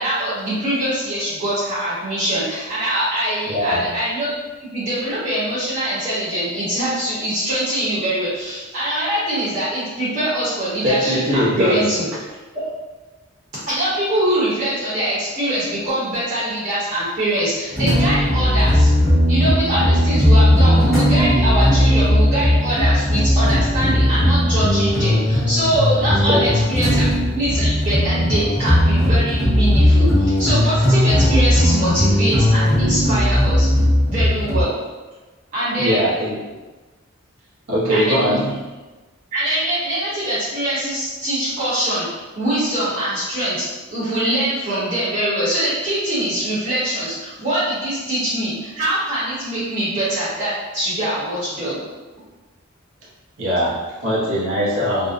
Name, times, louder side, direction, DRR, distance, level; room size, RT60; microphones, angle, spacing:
voice 1, 0.0-4.3 4.6-12.1 12.5-12.7 13.7-18.9 19.3-27.1 27.3-33.7 34.1-34.7 35.5-36.0 37.9-38.3 39.3-51.8, right 1 dB, 35° right, -11 dB, 0.8 m, -23 dB
voice 2, 3.5-3.8 10.8-11.9 26.3-26.4 26.8-27.0 35.7-36.4 37.7-38.5 53.4-55.1, equal, 70° right, -6 dB, 0.7 m, -20 dB
sound 1, 17.7-34.6, left 1 dB, ahead, 0.8 m, -17 dB
2.6 x 2.0 x 2.4 m, 1.2 s
head